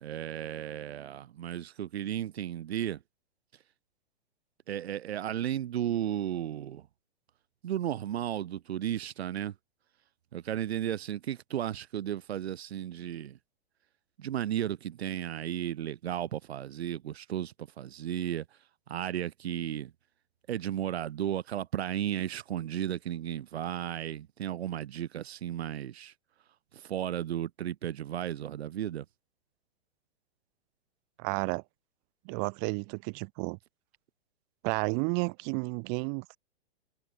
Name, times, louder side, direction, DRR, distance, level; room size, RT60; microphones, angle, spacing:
voice 1, 0.0-3.0 4.7-6.8 7.6-9.5 10.3-13.4 14.2-18.5 18.9-19.9 20.5-26.1 26.7-29.1, right 11 dB, 75° right, 0.6 m, -34 dB
voice 2, 31.2-31.6 32.3-33.6 34.6-36.4, right 40 dB or more, 25° right, 0.4 m, -32 dB
hypercardioid pair, 120°, 32 cm